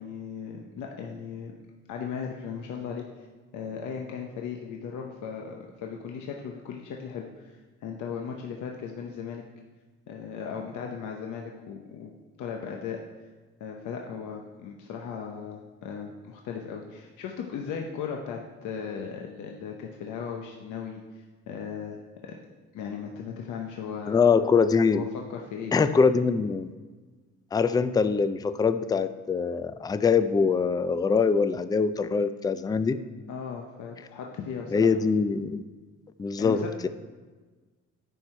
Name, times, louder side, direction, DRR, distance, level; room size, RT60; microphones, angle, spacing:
voice 1, 0.0-1.5 1.9-3.3 3.5-9.4 10.1-12.1 12.4-13.0 13.6-22.0 22.3-22.4 22.7-24.2 24.9-25.7 33.3-34.9 36.4-36.7, left 6 dB, 80° left, 1 dB, 0.8 m, -37 dB
voice 2, 24.1-25.1 25.7-26.7 27.5-33.0 34.7-35.6 36.2-36.9, left 5 dB, 15° left, 12 dB, 0.3 m, -23 dB
9.9 x 4.7 x 4.4 m, 1.3 s
cardioid pair, 90°, 30 cm